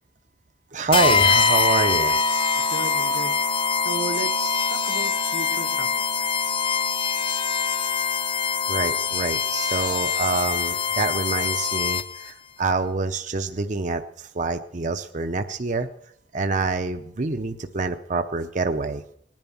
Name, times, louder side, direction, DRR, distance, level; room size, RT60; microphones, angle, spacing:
voice 1, 0.7-2.2 8.7-15.9 16.3-19.0, right 3 dB, 40° right, 8 dB, 0.6 m, -26 dB
sound 1, 0.9-12.3, left 5 dB, 30° left, 0.6 m, -23 dB
voice 2, 2.7-3.5 3.8-6.6, right 3 dB, 80° right, 7 dB, 1.3 m, -35 dB
19.0 x 10.5 x 7.1 m, 0.70 s
head